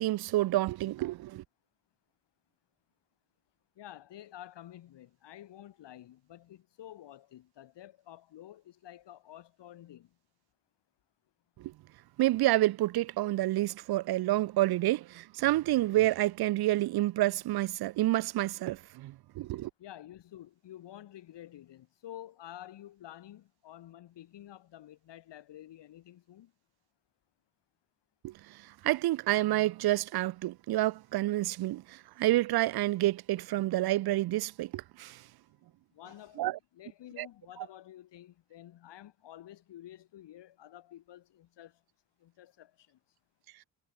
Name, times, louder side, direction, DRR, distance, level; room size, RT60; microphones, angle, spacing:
voice 1, 0.0-1.4 11.6-11.7 12.2-19.7 28.2-28.3 28.8-35.2 36.4-36.6 37.2-37.3, right 16 dB, 55° right, 0.7 m, -29 dB
voice 2, 3.8-10.1 19.8-26.5 35.9-41.8 42.2-43.0, left 12 dB, 65° left, 4.6 m, -50 dB
hypercardioid pair, 40°, 46 cm